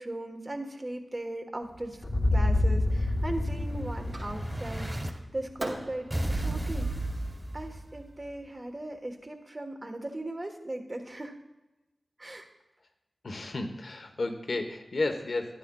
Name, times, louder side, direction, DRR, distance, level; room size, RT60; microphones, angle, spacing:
voice 1, 0.0-2.0 2.3-6.9 7.5-11.3 12.2-12.5, right 1 dB, 40° right, 4 dB, 1.3 m, -38 dB
Explosion, 1.7-5.1 6.1-8.1, right 1 dB, 20° right, 1.6 m, -35 dB
sound 1, 2.0-6.1, left 2 dB, 45° left, 1.2 m, -29 dB
Fireworks, 4.1-4.8 5.6-8.7, right 2 dB, 70° right, 2.2 m, -43 dB
voice 2, 13.2-15.6, left 2 dB, 70° left, 6 dB, 1.0 m, -32 dB
12.5 x 10.5 x 2.3 m, 1.0 s
cardioid pair, 45°, 0 cm